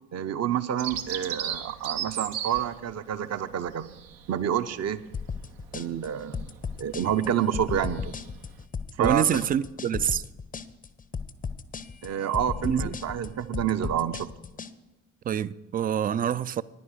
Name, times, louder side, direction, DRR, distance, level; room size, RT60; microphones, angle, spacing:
voice 1, 0.1-3.9 4.3-5.0 5.7-6.5 6.8-8.2 9.0-9.5 12.0-14.3, right 9 dB, 40° right, 0.7 m, -28 dB
Bird vocalization bird call bird song, 0.8-8.6, right 9 dB, 70° right, 0.8 m, -38 dB
sound 1, 5.1-14.7, left 5 dB, 20° left, 0.6 m, -35 dB
voice 2, 9.0-10.2 12.6-12.9 15.3-16.6, right 9 dB, 25° right, 0.3 m, -26 dB
10.0 x 9.4 x 6.5 m
figure-of-eight pair, 40°, 40 cm